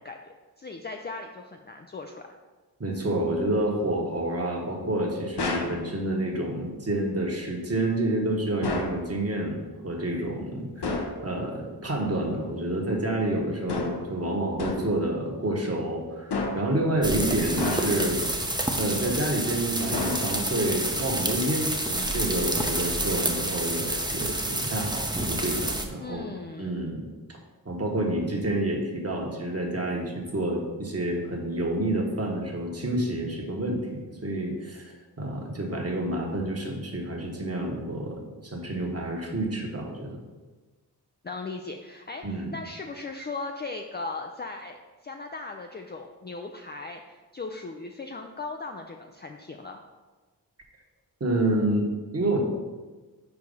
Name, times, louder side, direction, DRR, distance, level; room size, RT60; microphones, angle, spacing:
voice 1, 0.0-2.3 26.0-26.9 41.2-44.8 45.0-49.8, left 3 dB, 25° left, 3 dB, 0.4 m, -38 dB
voice 2, 2.8-9.6 9.8-18.2 18.8-26.3 26.6-27.1 27.6-40.2 42.2-42.5 51.2-52.4, right 1 dB, 35° right, 0 dB, 1.4 m, -29 dB
sound 1, 5.4-5.8 8.6-9.0 10.8-11.2 13.7-14.1 14.6-15.0 16.3-16.8 17.6-18.2 19.9-20.6, left 3 dB, 75° left, 1.0 m, -30 dB
sound 2, 17.0-25.8, right 1 dB, 10° right, 0.8 m, -29 dB
4.8 x 4.6 x 5.4 m, 1.3 s
cardioid pair, 55°, 41 cm